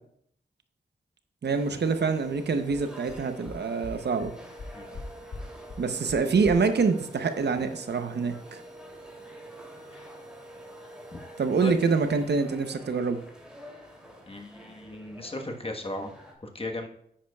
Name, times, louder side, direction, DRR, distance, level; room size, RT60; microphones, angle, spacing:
sound 1, 1.4-16.3, equal, 5° right, 2.7 m, -47 dB
voice 1, 1.4-4.3 5.8-8.6 11.4-13.2, right 4 dB, 70° right, 8 dB, 0.8 m, -26 dB
sound 2, 2.7-2.8 3.1-3.2 3.5-3.6 3.8-3.9 4.2-4.3 4.6-5.0 5.3-5.4 5.7-5.8 6.1-6.2 6.4-6.5, left 3 dB, 75° left, 1.4 m, -40 dB
voice 2, 14.3-16.1 16.4-16.9, left 2 dB, 30° left, 3 dB, 1.3 m, -36 dB
10.0 x 8.6 x 2.3 m, 0.71 s
cardioid pair, 50°, 18 cm